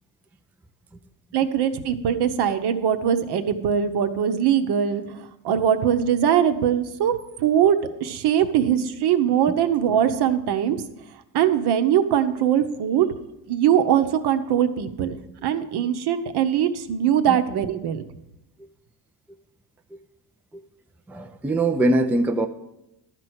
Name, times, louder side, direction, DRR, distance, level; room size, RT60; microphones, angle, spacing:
voice 1, 1.3-10.8 11.3-13.1 13.5-18.0, right 9 dB, 65° right, 8 dB, 1.0 m, -21 dB
voice 2, 21.1-22.5, right 2 dB, 5° right, 6 dB, 0.4 m, -22 dB
12.0 x 4.5 x 8.0 m, 0.90 s
cardioid pair, 125°, 43 cm